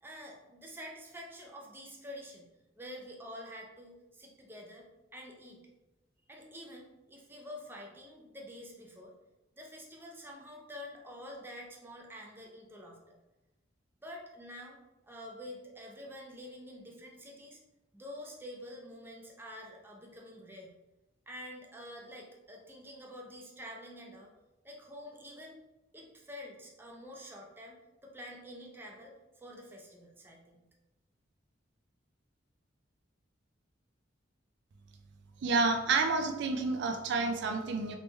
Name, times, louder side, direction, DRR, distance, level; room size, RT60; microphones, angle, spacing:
voice 1, 0.0-2.5 2.8-5.6 6.3-9.1 9.6-13.0 14.0-14.8 15.1-17.6 17.9-20.7 21.3-24.3 24.6-25.6 25.9-30.6, equal, 10° right, -1 dB, 0.6 m, -48 dB
voice 2, 35.4-38.0, right 3 dB, 65° right, 5 dB, 0.4 m, -29 dB
3.3 x 3.3 x 3.1 m, 1.0 s
head